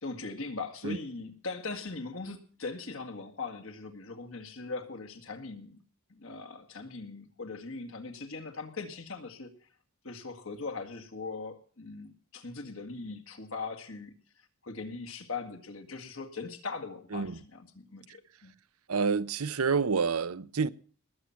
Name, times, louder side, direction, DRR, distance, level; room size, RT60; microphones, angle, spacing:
voice 1, 0.0-5.8 6.1-9.5 10.0-14.1 14.6-18.5, left 4 dB, 65° left, 1.9 m, -40 dB
voice 2, 18.9-20.7, right 5 dB, 80° right, 0.7 m, -28 dB
20.0 x 7.8 x 5.8 m
head